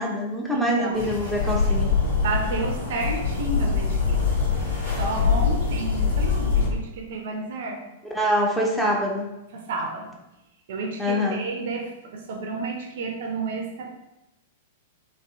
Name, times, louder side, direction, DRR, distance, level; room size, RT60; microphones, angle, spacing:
voice 1, 0.0-1.9 8.1-9.3 11.0-11.4, equal, ahead, -3 dB, 0.5 m, -24 dB
voice 2, 0.5-1.1 2.2-4.2 5.0-7.8 8.8-9.0 9.5-10.1 10.7-13.9, right 3 dB, 55° right, 2 dB, 0.5 m, -31 dB
sound 1, 0.9-6.7, left 5 dB, 70° left, 1.1 m, -24 dB
3.4 x 2.6 x 2.4 m, 0.93 s
figure-of-eight pair, 100°, 0 cm